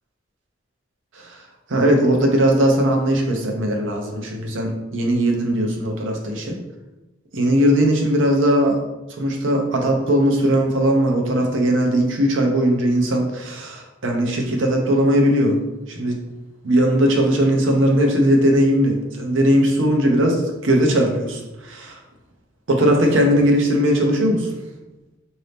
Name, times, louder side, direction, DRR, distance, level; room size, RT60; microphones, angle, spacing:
voice 1, 1.7-6.6 7.3-8.8 9.1-15.6 15.9-16.2 16.6-22.0 22.7-24.5, equal, 80° right, 2 dB, 0.7 m, -19 dB
3.9 x 2.7 x 3.4 m, 1.0 s
head